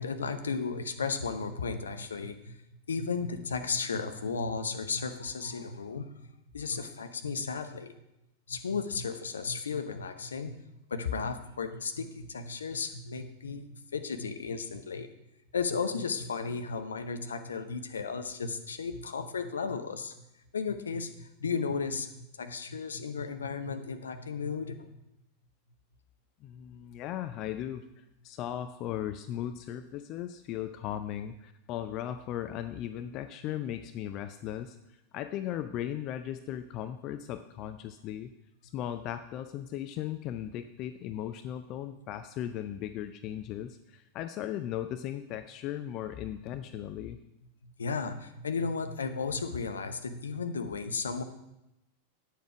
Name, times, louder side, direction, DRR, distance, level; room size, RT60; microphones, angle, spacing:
voice 1, 0.0-2.6 2.9-7.9 8.5-20.1 20.5-25.0 47.6-51.2, left 5 dB, 70° left, 8 dB, 0.8 m, -34 dB
voice 2, 26.4-27.9 28.2-34.8 35.1-38.3 38.7-47.2, left 11 dB, 40° left, 10 dB, 0.5 m, -37 dB
9.2 x 7.2 x 5.0 m, 0.86 s
figure-of-eight pair, 90°, 0 cm